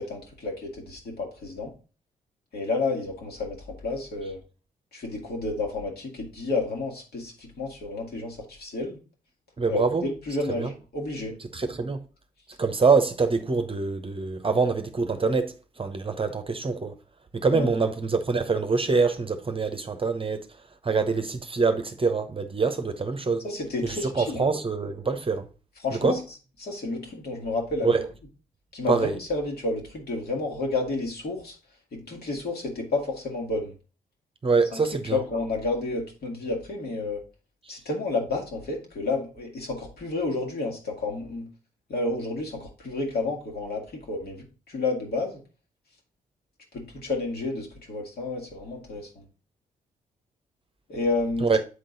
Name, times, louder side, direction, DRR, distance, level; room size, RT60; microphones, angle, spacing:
voice 1, 0.0-1.7 2.5-4.4 4.9-9.0 9.7-11.3 17.5-17.7 23.4-24.5 25.8-26.2 26.6-28.0 28.7-31.6 31.9-33.7 34.7-34.8 35.1-37.2 37.7-41.5 41.9-45.4 46.7-49.2 50.9-51.5, left 3 dB, 55° left, 2.3 m, -30 dB
voice 2, 9.6-10.0 10.5-10.7 11.5-12.0 12.6-16.9 17.3-20.5 20.8-23.4 23.8-25.5 26.0-26.2 27.8-28.0 28.9-29.2 34.4-35.2 51.4-51.6, right 4 dB, 30° right, 0.9 m, -25 dB
8.0 x 3.9 x 3.9 m
hypercardioid pair, 40°, 19 cm